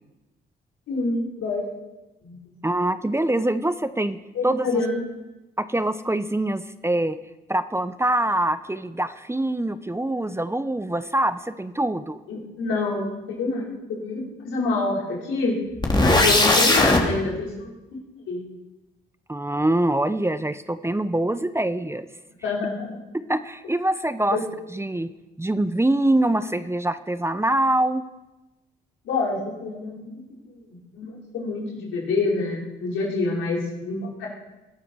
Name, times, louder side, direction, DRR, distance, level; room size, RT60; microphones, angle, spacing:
voice 1, 0.9-1.6 2.2-2.5 4.3-5.0 12.3-15.5 16.0-18.0 18.2-18.4 22.4-22.9 24.3-24.4 29.0-30.2 30.5-34.3, left 3 dB, 75° left, -4 dB, 5.3 m, -27 dB
voice 2, 2.6-4.2 4.4-4.8 5.6-7.2 7.5-12.2 15.9-16.2 19.3-22.1 23.1-24.4 24.7-25.1 25.4-28.0, right 1 dB, 10° right, 12 dB, 0.9 m, -24 dB
sound 1, 15.8-17.0, left 2 dB, 20° left, 3.6 m, -17 dB
21.0 x 12.5 x 4.8 m, 1.0 s
hypercardioid pair, 50°, 21 cm